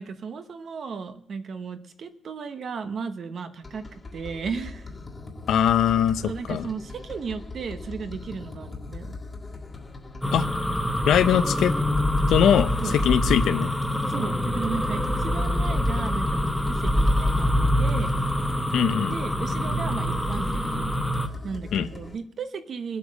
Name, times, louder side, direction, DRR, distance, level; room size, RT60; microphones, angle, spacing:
voice 1, 0.0-4.9 6.2-9.1 12.8-12.9 14.1-18.1 19.1-20.9 21.4-23.0, right 5 dB, 45° right, 10 dB, 1.0 m, -35 dB
sound 1, 3.6-22.1, left 3 dB, 20° left, 1.7 m, -40 dB
voice 2, 5.5-6.7 10.3-10.5 11.1-11.7 12.3-13.7 18.7-19.1 21.7-21.9, left 9 dB, 85° left, 12 dB, 0.7 m, -21 dB
sound 2, 10.2-21.3, left 1 dB, ahead, 1.0 m, -25 dB
21.5 x 8.4 x 6.4 m, 0.74 s
wide cardioid pair, 170°, 0 cm